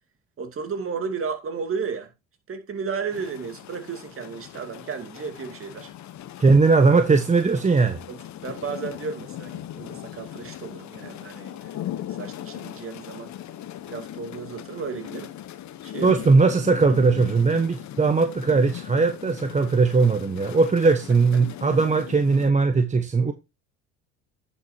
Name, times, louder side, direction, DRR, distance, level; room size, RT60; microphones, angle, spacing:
voice 1, 0.4-2.1 2.5-5.9 8.1-13.3 13.9-15.3 15.8-16.1, right 5 dB, 40° right, 2.4 m, -33 dB
sound 1, 3.1-22.5, left 12 dB, 50° left, 1.0 m, -39 dB
voice 2, 6.4-8.0 16.0-23.3, right 4 dB, 20° right, 1.0 m, -19 dB
10.0 x 7.8 x 2.8 m
supercardioid pair, 90°, 35 cm